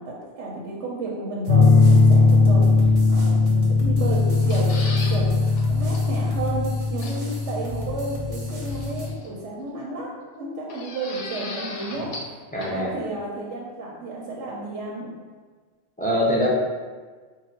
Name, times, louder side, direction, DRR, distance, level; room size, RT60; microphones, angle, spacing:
voice 1, 0.0-10.1 10.4-15.1, right 2 dB, 80° right, -4 dB, 0.9 m, -32 dB
sound 1, 1.4-9.1, right 1 dB, 40° right, 0.7 m, -40 dB
sound 2, 1.5-9.1, left 3 dB, 65° left, 0.8 m, -19 dB
sound 3, 4.3-5.2 5.6-5.7 5.9-6.0 7.0-7.4 8.7-9.3 10.7-12.3 12.6-12.7, left 3 dB, 85° left, 0.9 m, -36 dB
voice 2, 12.5-12.9 16.0-16.5, equal, 10° left, -6 dB, 0.4 m, -23 dB
3.7 x 2.1 x 4.3 m, 1.5 s
omnidirectional pair, 1.2 m